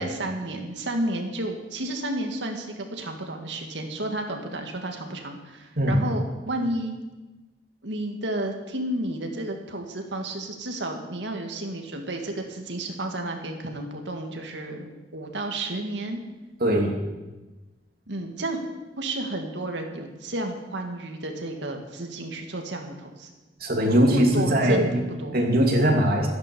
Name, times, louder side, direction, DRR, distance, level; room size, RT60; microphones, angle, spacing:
voice 1, 0.0-6.9 7.8-16.2 18.1-18.6 19.0-23.3 23.9-24.9 25.2-25.4, right 1 dB, 75° right, 3 dB, 2.1 m, -32 dB
voice 2, 16.6-16.9 23.6-25.0 25.3-26.3, equal, 55° right, 0 dB, 2.9 m, -20 dB
13.0 x 10.5 x 7.0 m, 1.1 s
head